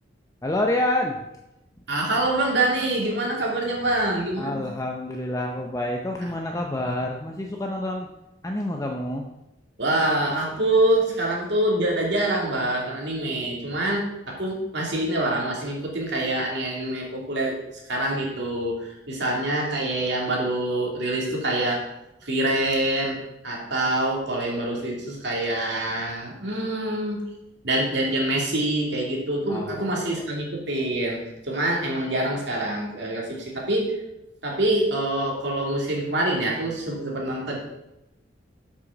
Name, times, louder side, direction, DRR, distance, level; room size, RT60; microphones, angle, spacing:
voice 1, 0.4-1.2 4.4-8.1 8.4-9.3 29.5-29.8 30.1-30.2, left 1 dB, 20° left, 1 dB, 0.7 m, -28 dB
voice 2, 1.9-4.7 6.2-6.3 9.8-17.6 17.9-21.9 22.2-23.2 23.4-27.2 27.6-31.2 31.5-33.9 34.4-37.6, right 1 dB, 65° right, -2 dB, 2.7 m, -25 dB
8.1 x 6.3 x 6.0 m, 0.92 s
head